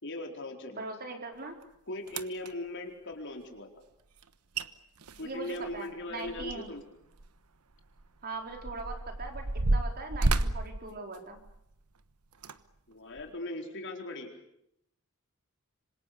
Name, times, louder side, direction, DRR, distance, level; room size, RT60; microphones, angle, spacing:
voice 1, 0.0-0.8 1.9-3.7 5.2-6.8 12.9-14.3, left 1 dB, 55° left, 3 dB, 4.4 m, -39 dB
voice 2, 0.7-1.6 5.2-6.7 8.2-11.4, right 3 dB, 45° right, 4 dB, 4.3 m, -40 dB
sound 1, 1.6-1.7 2.1-2.5 4.2-4.3 4.5-4.7 5.0-6.8 7.1-7.3 8.0-11.7 12.3-12.6 13.2-13.3, right 2 dB, 85° right, 1.2 m, -31 dB
26.0 x 26.0 x 6.8 m, 0.78 s
head